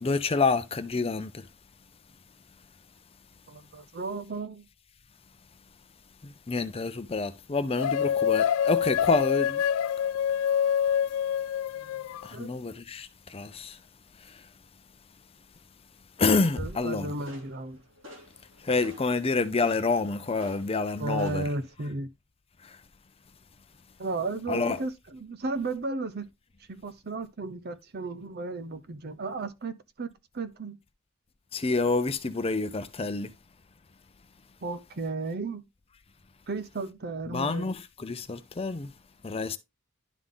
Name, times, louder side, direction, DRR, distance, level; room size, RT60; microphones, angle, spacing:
voice 1, 0.0-1.4 6.2-9.6 12.2-13.8 16.2-17.1 18.6-21.4 24.5-24.8 31.5-33.3 37.3-38.9 39.2-39.6, left 3 dB, 30° left, 0.6 m, -28 dB
voice 2, 3.5-4.6 11.8-12.6 16.5-17.8 21.0-22.1 24.0-26.3 26.7-30.8 34.6-35.7 36.5-37.7, right 3 dB, 50° right, 0.7 m, -34 dB
sound 1, 7.8-12.3, left 8 dB, 90° left, 0.3 m, -26 dB
sound 2, 16.6-21.7, left 1 dB, 70° right, 2.9 m, -51 dB
11.0 x 3.8 x 3.7 m
head